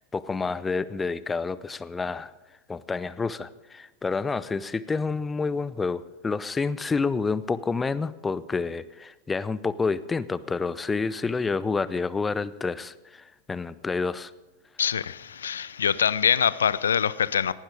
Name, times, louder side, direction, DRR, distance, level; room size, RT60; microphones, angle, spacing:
voice 1, 0.0-2.3 2.7-14.3, left 4 dB, 15° left, 17 dB, 0.5 m, -29 dB
voice 2, 14.8-17.5, left 8 dB, 65° left, 18 dB, 0.5 m, -24 dB
18.0 x 12.0 x 4.9 m, 1.1 s
figure-of-eight pair, 90°, 0 cm